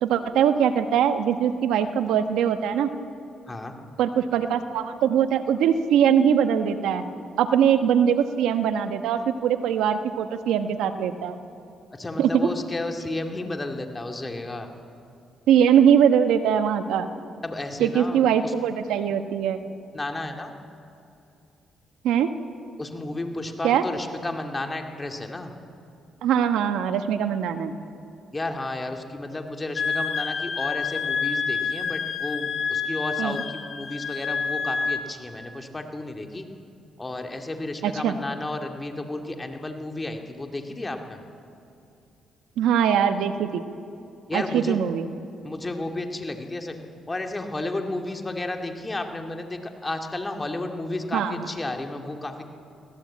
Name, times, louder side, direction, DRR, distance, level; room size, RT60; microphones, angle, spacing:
voice 1, 0.0-2.9 4.0-7.0 7.4-11.4 12.2-12.5 15.5-17.1 17.8-19.6 22.0-22.3 23.6-23.8 26.2-27.7 33.2-33.4 37.8-38.1 42.6-43.6 44.3-45.1 51.1-51.5, right 8 dB, 85° right, 9 dB, 1.2 m, -22 dB
voice 2, 11.9-14.7 17.4-18.5 19.9-20.5 22.8-25.5 28.3-36.5 37.0-41.2 44.3-44.8 45.4-46.7 47.1-52.4, left 2 dB, 20° left, 4 dB, 2.3 m, -32 dB
Wind instrument woodwind instrument, 29.8-35.1, left 5 dB, 55° left, 2.1 m, -28 dB
24.5 x 17.5 x 8.6 m, 2.6 s
cardioid pair, 90°, 0 cm